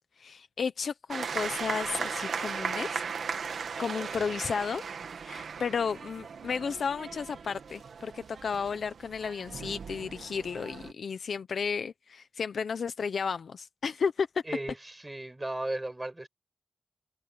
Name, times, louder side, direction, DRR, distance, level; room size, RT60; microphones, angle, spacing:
voice 1, 0.2-3.0 3.8-4.8 5.2-14.3, left 6 dB, 70° left, 0.9 m, -33 dB
sound 1, 1.1-10.9, right 6 dB, 80° right, 2.0 m, -37 dB
voice 2, 14.5-16.3, right 1 dB, 15° right, 6.5 m, -35 dB
wide cardioid pair, 125°, 0 cm